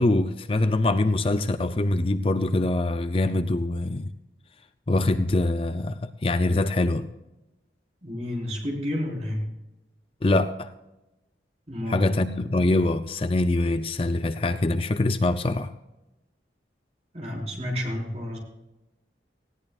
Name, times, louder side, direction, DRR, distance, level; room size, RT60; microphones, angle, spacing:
voice 1, 0.0-4.1 4.9-7.1 10.2-10.7 11.9-15.7, left 2 dB, 30° left, 10 dB, 0.5 m, -24 dB
voice 2, 8.0-9.5 11.7-12.1 17.1-18.4, left 1 dB, 35° right, -2 dB, 4.5 m, -30 dB
19.5 x 16.0 x 2.4 m, 1.0 s
head